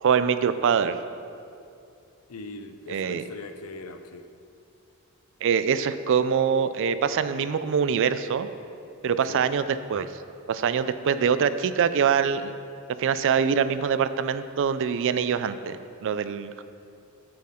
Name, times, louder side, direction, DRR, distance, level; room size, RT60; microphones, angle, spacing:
voice 1, 0.0-1.0 2.9-3.2 5.4-8.5 9.0-10.1 10.5-12.5 13.0-16.6, right 7 dB, 60° right, 12 dB, 0.4 m, -24 dB
voice 2, 2.3-4.3 9.0-9.5, left 3 dB, 85° left, 8 dB, 0.6 m, -40 dB
8.4 x 7.7 x 3.7 m, 2.6 s
head